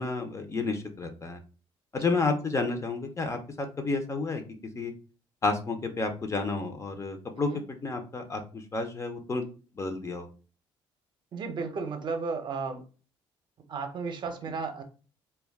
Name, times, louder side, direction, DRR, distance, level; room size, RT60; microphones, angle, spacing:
voice 1, 0.0-1.4 1.9-4.4 4.8-4.9 5.4-9.5 9.8-10.3, left 3 dB, 30° left, 6 dB, 0.5 m, -31 dB
voice 2, 11.3-12.8 13.7-14.8, right 4 dB, 45° right, 6 dB, 0.6 m, -34 dB
2.2 x 2.2 x 3.4 m, 0.35 s
cardioid pair, 105°, 10 cm